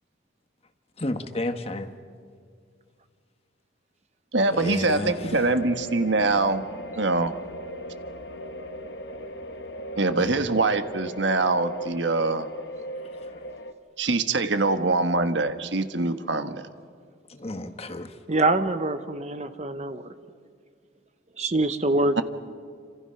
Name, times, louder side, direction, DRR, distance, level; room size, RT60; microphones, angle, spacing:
voice 1, 1.0-1.9 4.6-5.1 10.2-10.3 17.4-18.1, left 1 dB, 30° left, 8 dB, 1.3 m, -31 dB
voice 2, 4.3-6.7 7.0-7.3 10.0-12.5 14.0-16.6 22.2-22.3, right 3 dB, 65° right, 9 dB, 1.3 m, -24 dB
sound 1, 4.9-13.7, equal, 60° left, 1.3 m, -38 dB
voice 3, 18.3-20.1 21.4-22.2, right 2 dB, 35° right, 10 dB, 0.9 m, -24 dB
28.5 x 26.5 x 5.8 m, 2.2 s
head